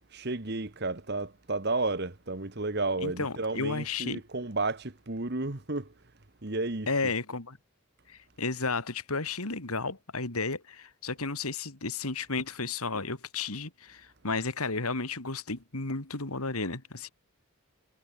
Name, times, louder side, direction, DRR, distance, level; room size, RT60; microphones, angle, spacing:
voice 1, 0.1-5.9 6.4-7.0, right 3 dB, 50° right, 1.5 m, -32 dB
voice 2, 3.0-4.2 6.9-7.6 8.1-17.1, left 3 dB, 85° left, 2.9 m, -33 dB
head